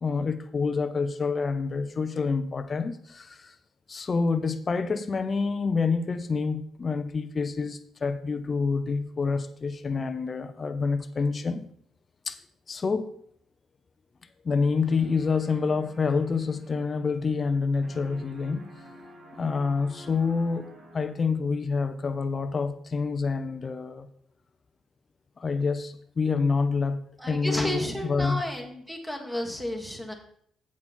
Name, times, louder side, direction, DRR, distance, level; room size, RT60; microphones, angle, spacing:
voice 1, 0.0-3.5 3.9-11.6 12.3-12.4 12.7-13.1 14.4-18.7 19.4-20.7 20.9-24.1 25.4-27.0 27.3-28.4, left 4 dB, 35° left, 0.7 m, -27 dB
sound 1, 14.8-17.6 17.8-21.4, right 1 dB, 45° right, 2.2 m, -50 dB
voice 2, 27.2-30.1, equal, 5° right, 1.8 m, -32 dB
8.6 x 7.4 x 4.3 m
cardioid pair, 90°, 0 cm